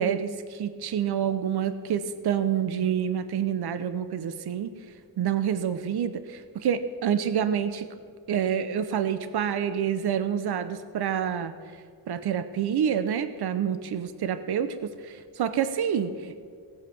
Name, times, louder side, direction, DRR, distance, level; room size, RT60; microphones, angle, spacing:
voice 1, 0.0-4.7 5.2-7.9 8.3-11.5 12.1-16.3, right 8 dB, 65° right, 12 dB, 0.9 m, -27 dB
17.5 x 7.6 x 6.1 m, 2.1 s
cardioid pair, 110°, 42 cm